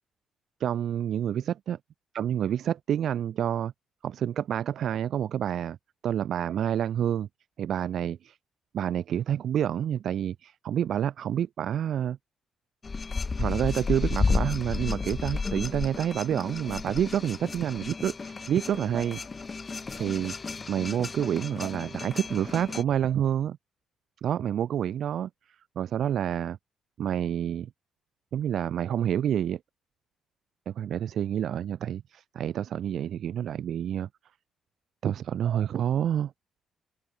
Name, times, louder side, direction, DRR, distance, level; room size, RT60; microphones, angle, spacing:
voice 1, 0.6-1.8 2.1-3.7 4.0-5.8 6.0-7.3 7.6-8.4 8.7-12.2 13.4-19.2 19.9-20.3 20.7-23.6 24.2-25.3 25.7-26.6 27.0-27.7 28.3-29.6 30.7-34.1 35.0-36.3, right 10 dB, 65° right, 3.0 m, -28 dB
sound 1, 12.8-22.8, left 4 dB, 30° left, 6.5 m, -32 dB
open air
cardioid pair, 90°, 0 cm